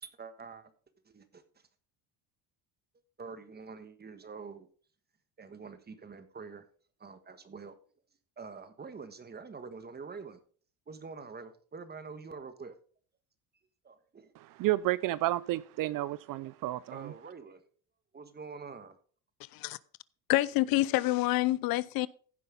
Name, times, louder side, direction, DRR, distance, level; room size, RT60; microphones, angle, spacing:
voice 1, 0.0-0.7 1.0-1.4 3.2-4.7 5.4-6.7 7.0-7.8 8.4-10.4 10.9-12.8 13.8-14.3 15.9-16.0 16.4-16.5 16.9-17.7 18.1-19.0, right 5 dB, 25° right, 1.5 m, -46 dB
voice 2, 14.6-17.1, right 16 dB, 55° right, 0.5 m, -31 dB
voice 3, 20.3-22.1, left 17 dB, 60° left, 0.6 m, -27 dB
16.0 x 5.5 x 3.9 m
supercardioid pair, 95°, 40 cm